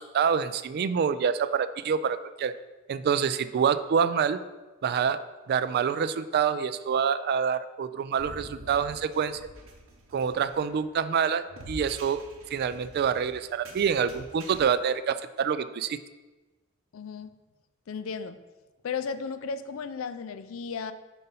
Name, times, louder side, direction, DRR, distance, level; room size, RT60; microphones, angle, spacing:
voice 1, 0.0-2.5 2.9-4.4 4.8-5.2 5.5-9.4 10.1-12.2 12.5-16.0, right 7 dB, 50° right, 13 dB, 0.3 m, -26 dB
sound 1, 8.2-14.6, right 1 dB, 85° right, 1.0 m, -47 dB
voice 2, 16.9-17.3 17.9-18.4 18.8-20.9, left 5 dB, 75° left, 11 dB, 0.4 m, -34 dB
5.3 x 4.2 x 5.4 m, 1.2 s
head